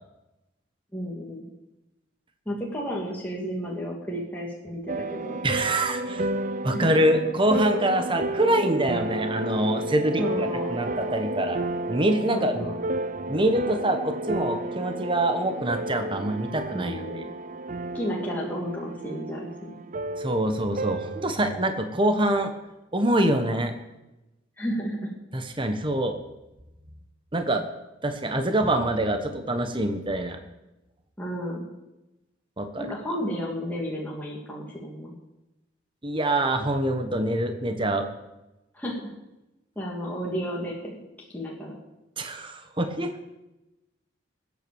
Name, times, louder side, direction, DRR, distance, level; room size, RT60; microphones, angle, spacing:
voice 1, 0.9-1.5 2.5-5.4 6.7-6.9 10.2-10.7 12.3-12.8 16.7-17.4 17.9-19.8 24.6-25.0 31.2-31.6 32.8-35.1 38.7-38.9 39.8-41.0 41.3-41.8, equal, 10° left, -4 dB, 2.7 m, -32 dB
sound 1, 4.9-21.4, right 2 dB, 40° right, 0.6 m, -32 dB
voice 2, 5.4-6.3 6.6-11.6 11.9-12.7 13.3-17.0 20.2-22.5 22.9-23.7 25.3-26.2 27.3-27.7 28.0-30.4 32.6-32.9 36.0-38.1 42.2-43.1, right 1 dB, 25° right, 7 dB, 1.3 m, -25 dB
20.5 x 8.6 x 7.1 m, 0.97 s
head